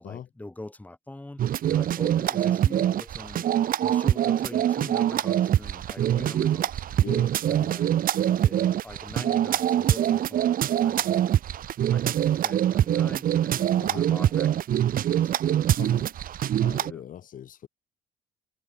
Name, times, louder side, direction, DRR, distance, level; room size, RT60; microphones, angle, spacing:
voice 1, 0.0-3.5 3.8-7.1 7.4-7.9 8.3-11.3 11.9-14.8 15.0-16.0 16.8-17.0, left 1 dB, 10° left, 5.7 m, -44 dB
sound 1, 1.4-16.9, right 11 dB, 55° right, 2.4 m, -24 dB
voice 2, 7.0-7.3 13.8-14.1 15.8-16.1 16.6-17.7, left 9 dB, 55° left, 5.6 m, -40 dB
cardioid pair, 110°, 17 cm